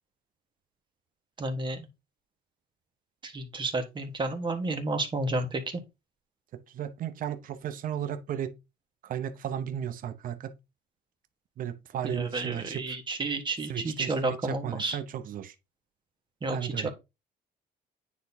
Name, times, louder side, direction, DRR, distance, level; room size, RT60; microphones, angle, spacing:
voice 1, 1.4-1.9 3.2-5.8 12.0-15.0 16.4-16.9, right 2 dB, 30° right, 1.5 m, -31 dB
voice 2, 6.7-8.5 9.0-10.5 11.6-13.0 13.7-15.6 16.5-16.9, right 10 dB, 55° right, 0.8 m, -34 dB
9.2 x 4.0 x 2.8 m
cardioid pair, 110°, 17 cm